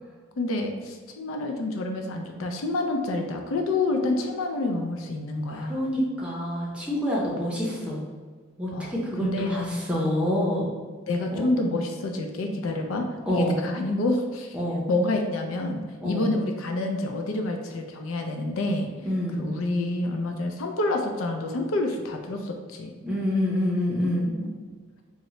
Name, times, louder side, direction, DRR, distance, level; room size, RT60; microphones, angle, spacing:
voice 1, 0.4-5.8 8.7-8.9 9.2-9.6 11.1-14.6 14.9-18.9 19.4-22.9 24.3-24.5, left 2 dB, 80° left, 3 dB, 0.4 m, -28 dB
voice 2, 5.5-8.0 8.6-10.6 11.3-11.5 13.3-13.5 14.5-14.8 16.0-16.3 19.0-19.4 23.0-24.3, left 1 dB, 5° right, -5 dB, 0.6 m, -27 dB
3.6 x 2.1 x 3.0 m, 1.5 s
head